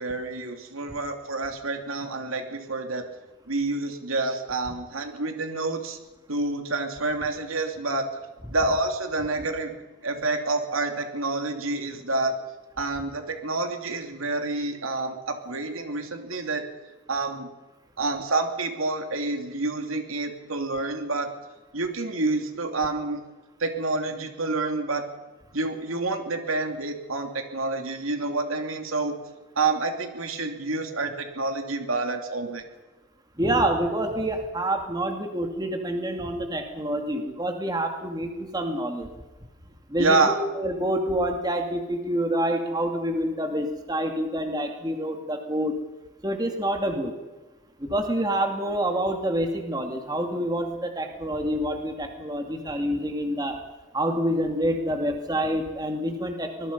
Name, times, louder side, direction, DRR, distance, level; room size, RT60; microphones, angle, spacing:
voice 1, 0.0-3.1 3.5-6.0 6.3-8.1 8.5-9.7 10.0-12.3 12.8-16.6 17.1-17.5 18.0-21.3 21.7-23.2 23.6-25.0 25.5-29.1 29.6-32.6 40.0-40.4, right 3 dB, 85° right, 5 dB, 3.0 m, -28 dB
voice 2, 33.4-39.1 39.9-45.8 46.2-47.1 47.8-53.6 53.9-56.7, right 1 dB, 20° right, 4 dB, 2.5 m, -27 dB
25.5 x 20.5 x 5.5 m, 1.1 s
head